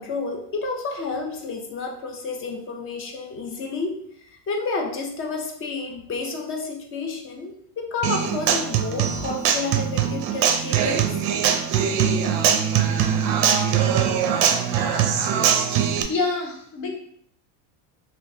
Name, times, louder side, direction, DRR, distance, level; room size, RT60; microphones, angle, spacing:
voice 1, 0.0-4.0 4.3-11.2, left 3 dB, 30° left, 3 dB, 0.5 m, -30 dB
Human voice / Acoustic guitar, 8.0-16.0, right 8 dB, 50° right, 0.5 m, -22 dB
voice 2, 16.1-16.9, left 3 dB, 55° left, 1 dB, 1.0 m, -26 dB
3.7 x 2.6 x 2.6 m, 0.65 s
cardioid pair, 145°, 43 cm